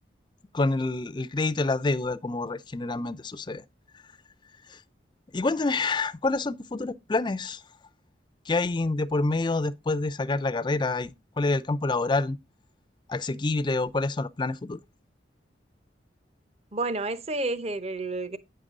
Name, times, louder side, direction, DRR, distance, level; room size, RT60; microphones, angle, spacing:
voice 1, 0.5-3.6 4.7-4.8 5.3-7.6 8.5-12.4 13.1-14.8, left 3 dB, 25° left, 0.4 m, -27 dB
voice 2, 16.7-18.4, right 2 dB, 35° right, 0.7 m, -30 dB
9.1 x 6.6 x 3.7 m
head